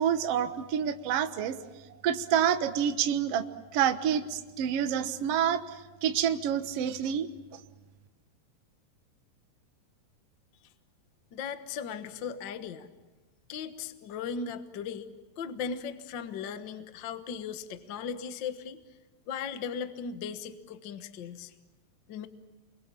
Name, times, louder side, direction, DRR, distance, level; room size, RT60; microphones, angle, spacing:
voice 1, 0.0-1.6 2.0-3.4 3.7-5.6 6.0-7.3, right 9 dB, 60° right, 8 dB, 1.8 m, -27 dB
voice 2, 11.3-12.9 13.5-15.1 15.4-18.8 19.3-21.5 22.1-22.3, left 6 dB, 65° left, 9 dB, 1.1 m, -37 dB
29.0 x 23.5 x 7.4 m, 1.2 s
omnidirectional pair, 4.1 m